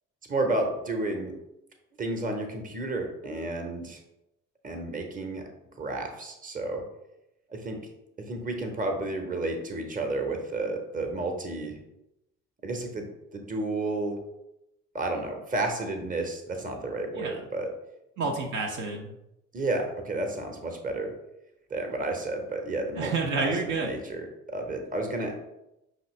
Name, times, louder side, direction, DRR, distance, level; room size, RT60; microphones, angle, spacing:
voice 1, 0.3-1.3 2.0-4.0 4.6-5.4 5.8-6.8 7.5-7.8 8.3-11.8 12.6-14.2 14.9-17.7 19.5-21.1 21.7-23.5 23.8-25.3, right 2 dB, 20° right, 4 dB, 0.9 m, -31 dB
voice 2, 17.1-17.4 18.2-19.1 23.0-23.9, right 4 dB, 55° right, 1 dB, 0.8 m, -29 dB
5.6 x 2.9 x 3.2 m, 0.88 s
figure-of-eight pair, 45°, 37 cm